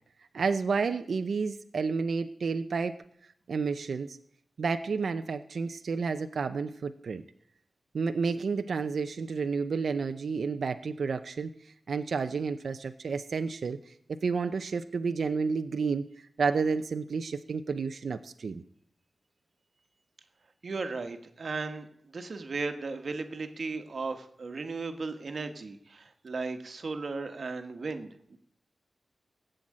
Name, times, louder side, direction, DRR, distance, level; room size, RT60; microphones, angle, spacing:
voice 1, 0.3-3.0 3.5-4.2 4.6-7.2 7.9-16.0 16.4-18.6, right 5 dB, 75° right, 9 dB, 0.7 m, -31 dB
voice 2, 20.6-21.9 22.1-28.4, right 3 dB, 55° right, 8 dB, 1.5 m, -36 dB
17.0 x 7.9 x 8.7 m, 0.69 s
wide cardioid pair, 130°, 0 cm